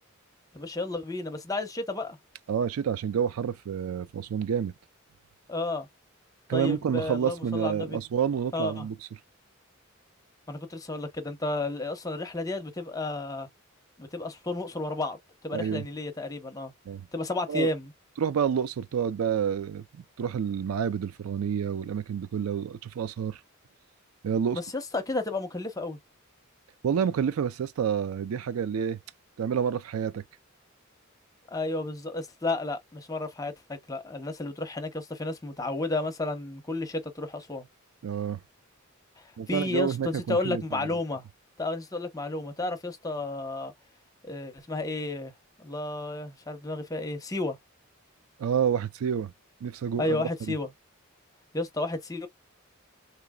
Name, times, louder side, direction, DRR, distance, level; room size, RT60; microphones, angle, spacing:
voice 1, 0.5-2.2 5.5-5.9 6.5-8.0 8.5-8.9 10.5-13.5 14.0-16.7 17.1-17.9 24.5-26.0 31.5-37.7 39.2-41.3 41.6-43.7 44.2-45.3 45.6-47.6 50.0-50.7 51.5-52.3, left 2 dB, 15° left, 0.8 m, -32 dB
voice 2, 2.5-4.7 6.5-8.9 15.5-15.8 16.9-17.1 17.5-17.7 18.2-23.4 24.2-24.6 26.8-29.0 29.4-30.2 38.0-38.4 39.4-40.9 48.4-49.3 49.6-50.2, right 7 dB, 90° right, 0.4 m, -29 dB
3.9 x 2.8 x 2.2 m
head